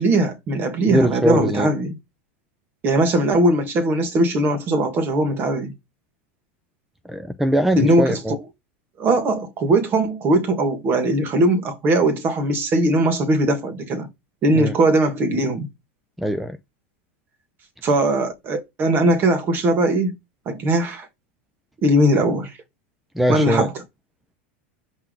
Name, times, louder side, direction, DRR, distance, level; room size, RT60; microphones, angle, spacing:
voice 1, 0.0-2.0 2.8-5.7 7.8-8.4 9.0-14.1 14.4-15.7 17.8-20.1 20.5-21.1 21.8-22.5 23.3-23.7, right 1 dB, 35° right, 1.7 m, -20 dB
voice 2, 0.9-1.7 7.1-8.4 14.5-14.7 16.2-16.6 23.2-23.7, equal, 5° right, 0.5 m, -21 dB
5.6 x 4.4 x 3.8 m
supercardioid pair, 130°, 6 cm